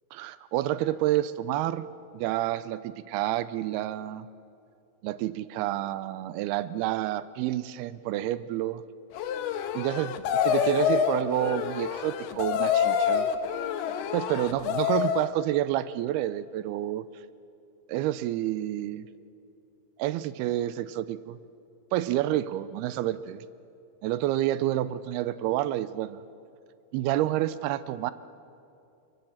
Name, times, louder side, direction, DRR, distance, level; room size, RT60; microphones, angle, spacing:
voice 1, 0.1-1.9 2.1-4.3 5.0-8.8 9.7-13.3 14.1-17.1 17.9-19.1 20.0-21.4 21.9-23.4 24.0-26.2 26.9-28.1, right 14 dB, 85° right, 15 dB, 2.6 m, -29 dB
sound 1, 9.1-15.3, left 8 dB, 90° left, 3.0 m, -27 dB
24.0 x 22.0 x 7.3 m, 2.6 s
omnidirectional pair, 4.5 m